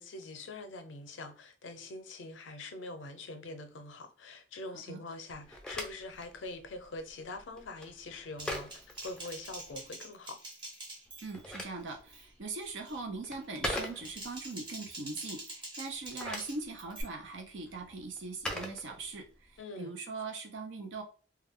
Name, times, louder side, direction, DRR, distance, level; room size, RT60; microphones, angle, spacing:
voice 1, 0.0-10.4 19.6-19.9, left 2 dB, 90° left, 0.5 m, -44 dB
Telephone, 5.3-9.8 11.1-14.5 15.9-19.5, left 1 dB, 5° left, 0.4 m, -43 dB
Typing, 8.4-11.5 11.9-12.2 12.6-13.0 13.8-17.0, right 1 dB, 25° right, 1.0 m, -46 dB
voice 2, 11.2-21.0, right 3 dB, 80° right, 0.6 m, -41 dB
2.3 x 2.2 x 3.5 m
head